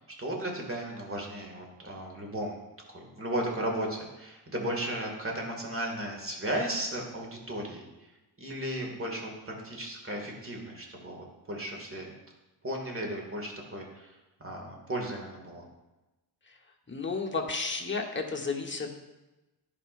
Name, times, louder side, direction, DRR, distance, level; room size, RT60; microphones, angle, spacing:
voice 1, 0.0-2.6 2.9-7.9 8.4-12.1 12.6-15.6, right 1 dB, 30° right, 0 dB, 2.2 m, -35 dB
voice 2, 16.9-19.0, left 4 dB, 25° left, 0 dB, 1.3 m, -32 dB
11.0 x 4.9 x 2.6 m, 1.1 s
cardioid pair, 55°, 46 cm